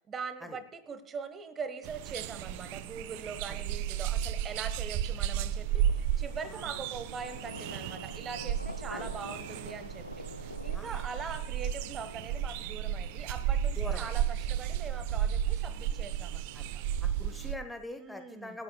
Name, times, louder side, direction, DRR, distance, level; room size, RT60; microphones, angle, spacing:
voice 1, 0.1-10.2 10.6-16.8 18.0-18.6, right 5 dB, 20° right, 13 dB, 1.1 m, -42 dB
sound 1, 1.8-17.5, right 10 dB, 45° right, 0.5 m, -33 dB
sound 2, 4.3-4.4 5.8-17.7, left 3 dB, 80° left, 0.5 m, -49 dB
voice 2, 6.5-6.8 8.9-9.1 10.7-11.0 13.8-14.1 16.5-16.6 17.0-18.6, left 2 dB, 5° left, 6 dB, 1.0 m, -43 dB
27.0 x 9.6 x 2.3 m, 0.81 s
figure-of-eight pair, 90°, 0 cm